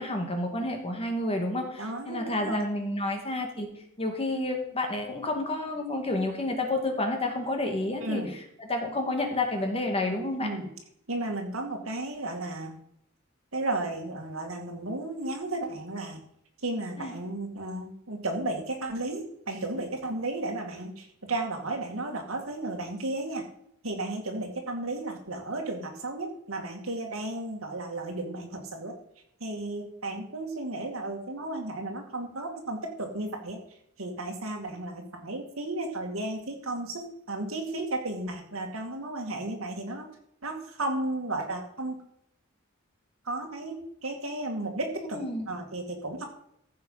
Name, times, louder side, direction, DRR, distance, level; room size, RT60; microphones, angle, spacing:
voice 1, 0.0-3.7 4.0-8.2 8.6-10.5 17.0-17.1 45.0-45.5, left 2 dB, 30° left, 3 dB, 2.1 m, -30 dB
voice 2, 1.8-2.7 8.0-8.3 10.4-10.7 11.1-12.8 13.5-16.2 16.6-23.5 23.8-28.9 29.4-33.6 34.0-40.1 40.4-42.0 43.2-45.2 45.5-46.2, right 2 dB, 70° right, 3 dB, 2.3 m, -34 dB
14.5 x 6.7 x 5.7 m, 0.73 s
head